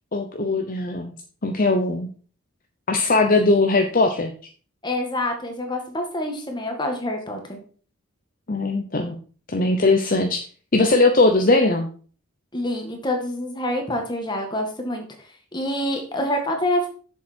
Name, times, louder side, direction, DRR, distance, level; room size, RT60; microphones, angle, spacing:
voice 1, 0.1-1.1 1.4-2.1 2.9-4.3 8.5-9.2 9.5-10.4 10.7-11.9, left 2 dB, 40° left, 4 dB, 0.8 m, -20 dB
voice 2, 4.8-7.6 12.5-15.1 15.5-16.9, left 1 dB, 20° left, 3 dB, 1.8 m, -26 dB
7.5 x 7.2 x 4.5 m, 0.41 s
head